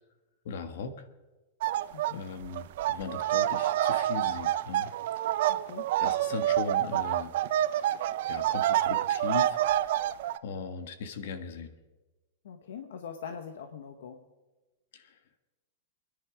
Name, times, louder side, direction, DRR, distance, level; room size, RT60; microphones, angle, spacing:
voice 1, 0.4-1.0 2.1-4.9 6.0-7.3 7.8-7.9 8.3-9.6 10.4-11.8 14.9-15.2, left 5 dB, 60° left, 9 dB, 1.5 m, -38 dB
sound 1, 1.6-2.1 2.4-10.4, right 13 dB, 55° right, 0.5 m, -27 dB
voice 2, 1.9-2.2 5.5-5.9 12.4-14.2, left 7 dB, 75° left, 7 dB, 1.1 m, -42 dB
27.5 x 10.5 x 5.0 m, 1.2 s
supercardioid pair, 170°, 0 cm